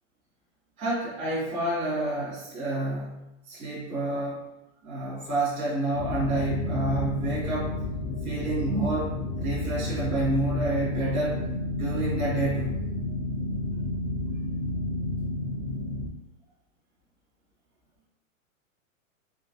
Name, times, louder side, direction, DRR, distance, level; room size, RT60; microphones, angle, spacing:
voice 1, 0.8-3.2 3.5-4.4 4.8-7.7 8.2-11.4 11.7-12.8, right 2 dB, 10° right, -11 dB, 0.5 m, -29 dB
sound 1, 5.9-16.1, left 2 dB, 45° left, 0.5 m, -31 dB
3.7 x 3.2 x 2.6 m, 0.92 s
hypercardioid pair, 180°, 41 cm